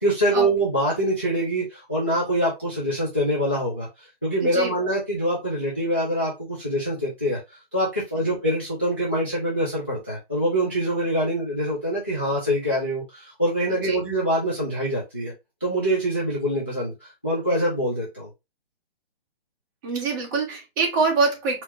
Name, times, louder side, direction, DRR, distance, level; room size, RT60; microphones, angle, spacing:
voice 1, 0.0-7.4 7.7-15.3 15.6-18.3, equal, 10° left, 0.3 m, -24 dB
voice 2, 4.4-4.7 8.3-8.4 13.7-14.0 19.8-21.6, right 4 dB, 20° right, 1.0 m, -25 dB
4.2 x 2.8 x 3.1 m
hypercardioid pair, 165°, 31 cm